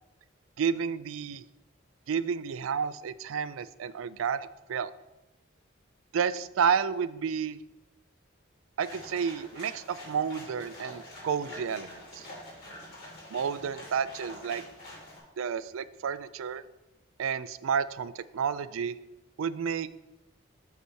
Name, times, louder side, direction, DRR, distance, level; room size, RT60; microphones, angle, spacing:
voice 1, 0.6-1.5 2.1-4.9 6.1-7.6 8.8-12.3 13.3-14.6 15.4-16.6 17.2-19.0 19.4-19.9, right 7 dB, 85° right, 15 dB, 0.4 m, -31 dB
sound 1, 8.8-15.2, left 1 dB, 45° left, 3.1 m, -46 dB
5.6 x 5.6 x 6.2 m, 0.99 s
head